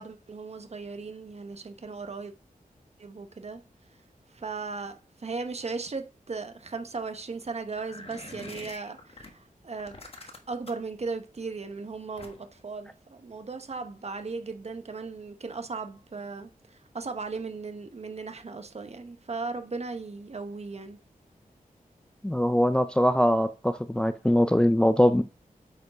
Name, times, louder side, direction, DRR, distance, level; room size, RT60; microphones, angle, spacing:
voice 1, 0.0-2.3 3.0-3.6 3.9-4.0 4.3-10.0 10.5-21.0, right 4 dB, 45° right, 0.9 m, -37 dB
sound 1, 7.7-9.3 9.8-10.9 12.2-12.6, left 2 dB, 40° left, 1.2 m, -45 dB
voice 2, 22.2-25.2, equal, 5° left, 0.4 m, -22 dB
8.2 x 4.7 x 4.9 m
wide cardioid pair, 105°, 15 cm